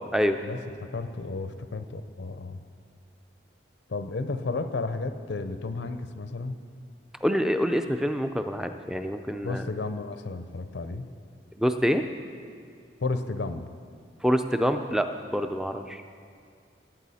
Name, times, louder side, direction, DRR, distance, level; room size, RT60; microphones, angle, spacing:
voice 1, 0.4-2.6 3.9-6.6 9.4-11.1 13.0-13.7, left 3 dB, 70° left, 9 dB, 0.6 m, -33 dB
voice 2, 7.2-9.6 11.6-12.0 14.2-16.0, equal, 5° right, 7 dB, 0.4 m, -26 dB
18.0 x 8.9 x 4.2 m, 2.3 s
head